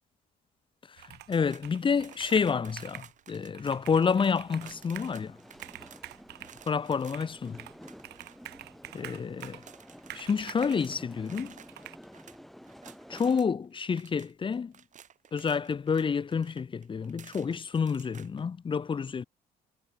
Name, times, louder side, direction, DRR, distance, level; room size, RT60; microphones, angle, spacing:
voice 1, 1.0-5.4 6.7-7.6 8.9-9.6 10.1-11.5 13.1-14.7 15.3-19.2, left 6 dB, 30° left, 1.2 m, -29 dB
Computer keyboard, 1.0-1.4 1.6-3.1 3.5-5.2 5.5-6.6 7.1-7.8 8.0-9.7 10.1-10.8 11.4-12.0, right 16 dB, 80° right, 2.6 m, -46 dB
sound 1, 1.3-13.5 13.8-18.4, right 8 dB, 45° right, 4.5 m, -54 dB
sound 2, 4.4-13.4, equal, ahead, 7.2 m, -51 dB
cardioid pair, 110°, 17 cm